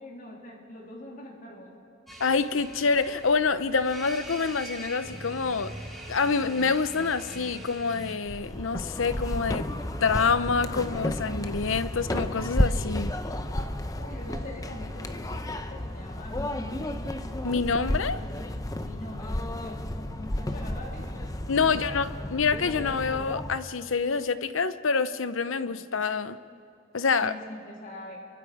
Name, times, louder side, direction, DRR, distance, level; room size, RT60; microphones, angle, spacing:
voice 1, 0.0-1.8 14.0-17.0 18.0-18.5 18.8-21.3 21.6-22.0 27.2-28.2, left 1 dB, 45° left, -1 dB, 3.5 m, -43 dB
sound 1, 2.1-8.1, right 1 dB, ahead, 4.0 m, -42 dB
voice 2, 2.2-5.8 6.1-9.7 10.0-13.1 17.4-18.2 21.5-26.4 26.9-27.3, left 5 dB, 80° left, 13 dB, 0.8 m, -26 dB
sound 2, 8.2-23.6, left 1 dB, 20° left, 0.9 m, -32 dB
29.0 x 23.5 x 5.0 m, 2.8 s
head